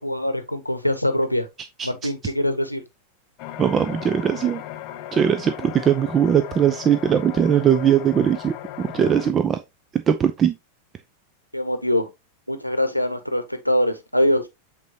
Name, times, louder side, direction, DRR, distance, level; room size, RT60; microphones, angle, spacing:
voice 1, 0.0-1.5 1.8-2.8 11.5-12.1 12.5-14.5, left 1 dB, 90° left, 0.9 m, -23 dB
sound 1, 3.4-9.3, left 13 dB, 45° left, 0.6 m, -36 dB
voice 2, 3.6-4.6 5.1-9.6 9.9-10.5, right 8 dB, 25° right, 0.5 m, -20 dB
8.1 x 4.1 x 2.8 m
figure-of-eight pair, 90°, 0 cm